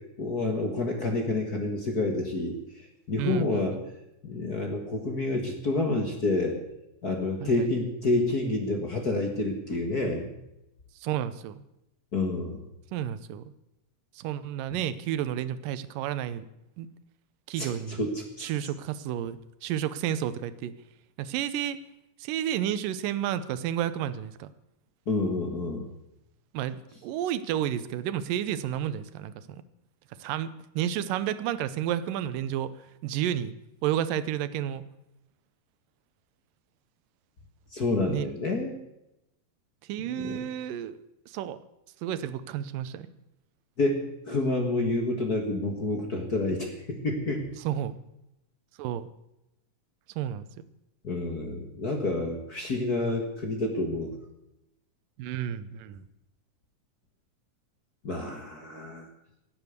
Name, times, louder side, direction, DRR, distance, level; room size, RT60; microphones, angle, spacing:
voice 1, 0.2-2.6 3.1-3.8 4.2-6.6 7.0-10.3 12.1-12.6 17.6-18.5 25.1-25.8 37.7-38.7 40.1-40.4 43.8-47.4 51.0-54.1 58.0-59.1, left 2 dB, 40° left, 3 dB, 1.6 m, -28 dB
voice 2, 3.2-3.8 7.4-7.6 11.0-11.6 12.9-13.5 14.2-16.5 16.8-16.9 17.5-18.1 18.4-20.7 21.2-21.8 22.2-24.5 26.5-29.6 30.2-32.7 33.0-33.5 33.8-34.8 38.1-38.3 39.9-41.6 42.0-43.1 47.6-48.0 48.8-49.1 50.2-50.5 55.2-56.0, right 11 dB, 90° right, 14 dB, 2.5 m, -31 dB
17.0 x 8.9 x 8.1 m, 0.87 s
omnidirectional pair, 3.8 m